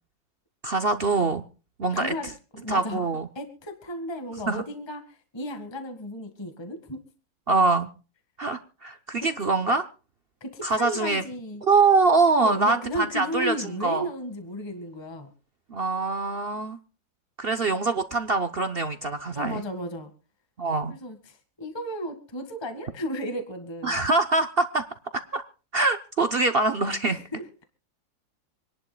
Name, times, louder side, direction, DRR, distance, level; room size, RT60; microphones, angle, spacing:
voice 1, 0.6-1.4 1.8-2.1 2.7-3.3 4.5-4.6 7.5-7.9 8.4-9.8 10.6-11.2 11.6-14.1 15.7-16.8 17.4-19.6 20.6-20.9 23.8-24.8 25.3-25.4 25.7-27.2, right 3 dB, 60° right, 8 dB, 0.6 m, -24 dB
voice 2, 1.9-2.3 2.5-3.0 3.3-7.0 9.2-9.3 10.4-11.6 12.3-15.3 19.3-20.1 20.9-24.0 27.0-27.6, equal, 15° left, 7 dB, 1.6 m, -34 dB
27.0 x 11.0 x 2.3 m, 0.34 s
omnidirectional pair, 2.1 m